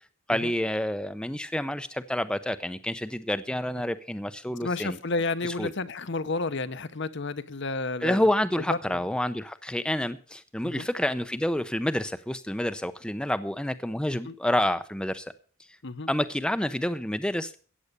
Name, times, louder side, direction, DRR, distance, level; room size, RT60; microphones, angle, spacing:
voice 1, 0.3-5.0 5.4-5.7 8.0-15.3 16.1-17.6, left 1 dB, 5° left, 11 dB, 0.6 m, -28 dB
voice 2, 4.6-8.3 8.7-9.0 10.6-10.9 14.2-14.3 15.8-16.1, left 3 dB, 60° left, 12 dB, 0.9 m, -31 dB
15.0 x 8.5 x 6.7 m, 0.40 s
head